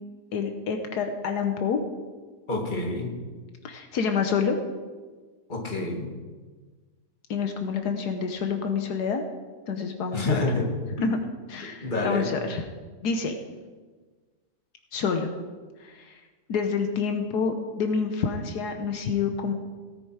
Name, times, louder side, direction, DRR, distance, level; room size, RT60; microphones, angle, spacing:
voice 1, 0.3-1.8 3.6-4.6 7.3-9.2 9.7-10.4 11.0-11.2 11.5-12.6 13.0-13.3 14.9-15.3 15.8-16.2 16.5-19.5, left 5 dB, 80° left, 6 dB, 1.5 m, -27 dB
voice 2, 2.5-3.1 5.5-6.1 10.1-10.7 11.8-12.3, left 2 dB, 30° left, 0 dB, 2.2 m, -27 dB
17.0 x 9.9 x 4.8 m, 1.4 s
omnidirectional pair, 1.7 m